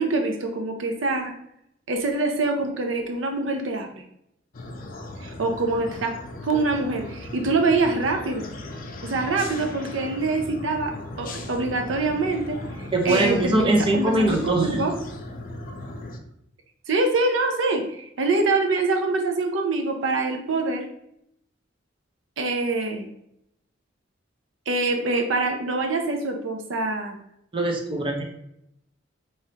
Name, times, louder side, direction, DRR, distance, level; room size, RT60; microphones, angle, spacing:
voice 1, 0.0-1.3 1.9-3.9 5.2-6.1 6.4-8.5 9.0-10.9 11.2-14.9 16.9-20.9 22.4-23.1 24.7-27.2, right 3 dB, 75° right, 4 dB, 0.6 m, -25 dB
sound 1, 4.5-16.2, left 2 dB, 45° left, 0.5 m, -37 dB
voice 2, 12.9-14.8 27.5-28.2, right 2 dB, 25° right, 1 dB, 0.7 m, -22 dB
4.7 x 3.1 x 2.8 m, 0.77 s
head